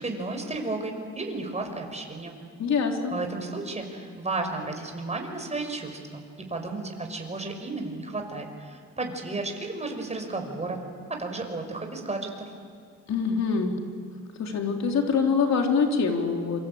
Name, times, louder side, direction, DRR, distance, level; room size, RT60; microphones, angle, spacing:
voice 1, 0.0-2.4 3.1-6.2 6.5-10.8 11.1-12.5, right 3 dB, 20° right, 4 dB, 5.7 m, -33 dB
voice 2, 2.6-3.2 13.1-13.8 14.4-16.6, left 5 dB, 60° left, 3 dB, 3.8 m, -24 dB
27.0 x 25.5 x 8.7 m, 2.2 s
cardioid pair, 90°, 30 cm